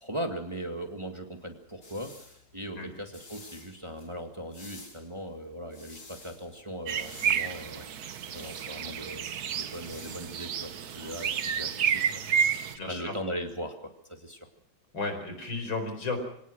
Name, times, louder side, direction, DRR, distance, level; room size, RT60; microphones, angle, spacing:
voice 1, 0.0-14.5, equal, 15° right, 4 dB, 1.8 m, -39 dB
sound 1, 1.4-12.4, left 3 dB, 50° left, 4.2 m, -53 dB
sound 2, 6.9-12.8, right 8 dB, 55° right, 1.4 m, -30 dB
voice 2, 12.7-13.1 14.9-16.2, left 3 dB, 85° left, 6 dB, 5.5 m, -33 dB
25.5 x 18.0 x 6.4 m, 0.72 s
omnidirectional pair, 2.1 m